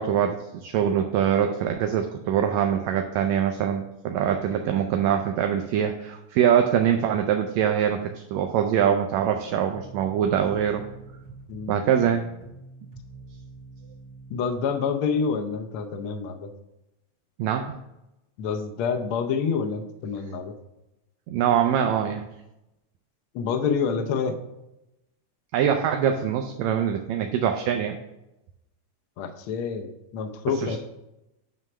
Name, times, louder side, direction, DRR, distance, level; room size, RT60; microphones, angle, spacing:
voice 1, 0.0-10.8 11.7-12.2 17.4-17.8 21.3-22.2 25.5-28.0 30.6-30.8, right 9 dB, 80° right, 4 dB, 1.7 m, -23 dB
sound 1, 9.2-14.6, right 3 dB, 45° right, 2.8 m, -45 dB
voice 2, 11.5-11.8 14.3-16.5 18.4-20.5 23.3-24.3 29.2-30.8, left 6 dB, 85° left, 6 dB, 1.1 m, -27 dB
9.2 x 3.3 x 6.0 m, 0.91 s
omnidirectional pair, 3.4 m